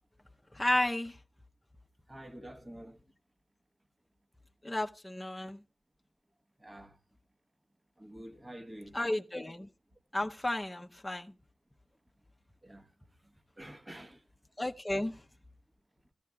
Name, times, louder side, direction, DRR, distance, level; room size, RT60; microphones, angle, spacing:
voice 1, 0.5-1.1 4.6-5.6 8.9-9.7 10.1-11.3 14.6-15.1, left 1 dB, 15° left, 0.7 m, -32 dB
voice 2, 2.1-3.0 6.6-6.9 8.0-9.0 12.6-12.9 13.6-14.2, right 1 dB, 25° right, 1.1 m, -48 dB
16.0 x 14.0 x 2.3 m
cardioid pair, 60°, 0 cm